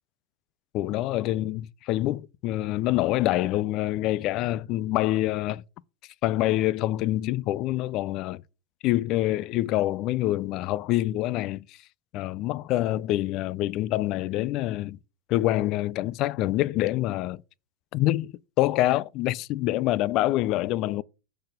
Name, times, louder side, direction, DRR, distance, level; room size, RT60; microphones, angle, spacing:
voice 1, 0.7-5.6 6.2-8.4 8.8-11.8 12.1-15.0 15.3-17.4 17.9-21.0, left 15 dB, 40° left, 0.4 m, -26 dB
6.6 x 4.1 x 6.5 m
supercardioid pair, 145°, 0 cm